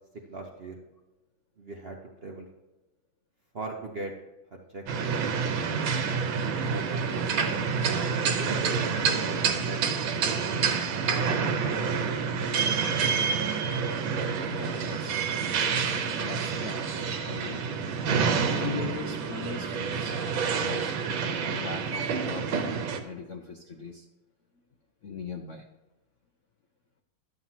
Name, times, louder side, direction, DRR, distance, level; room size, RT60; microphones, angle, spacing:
voice 1, 0.3-0.8 1.6-2.5 3.5-4.1 4.5-5.5 6.6-10.0, right 2 dB, 50° right, 1 dB, 0.7 m, -41 dB
sound 1, 4.9-23.0, right 6 dB, 80° right, 1.7 m, -28 dB
voice 2, 14.5-20.9 21.4-22.7 23.0-24.1 25.0-25.7, left 5 dB, 70° left, 4 dB, 0.7 m, -40 dB
12.0 x 7.5 x 2.8 m, 1.0 s
omnidirectional pair, 2.2 m